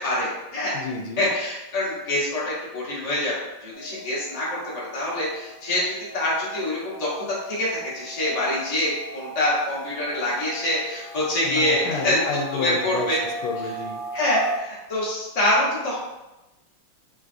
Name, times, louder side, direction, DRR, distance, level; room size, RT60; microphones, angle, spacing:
voice 1, 0.0-0.8 1.2-12.2 12.5-13.2 14.1-16.0, left 1 dB, 35° left, -8 dB, 0.6 m, -25 dB
voice 2, 0.7-1.2 11.4-13.1 13.4-14.0, left 4 dB, 85° left, 2 dB, 1.4 m, -30 dB
sound 1, 3.7-14.6, right 2 dB, 70° right, 1.2 m, -38 dB
4.5 x 2.3 x 2.4 m, 1.0 s
omnidirectional pair, 2.4 m